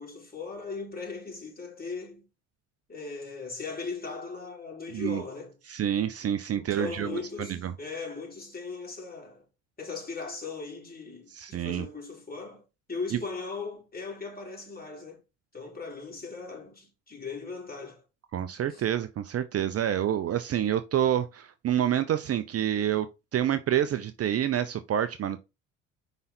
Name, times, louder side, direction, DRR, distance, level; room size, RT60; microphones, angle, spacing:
voice 1, 0.0-2.3 2.9-5.6 6.6-9.4 9.8-12.6 12.9-15.2 15.5-18.0 18.7-18.8, left 4 dB, 25° left, 3.9 m, -38 dB
voice 2, 4.9-5.2 5.7-7.7 11.3-11.9 13.1-13.2 18.3-23.1 23.3-25.4, right 10 dB, 40° right, 0.7 m, -28 dB
5.5 x 4.0 x 5.9 m
hypercardioid pair, 65°, 38 cm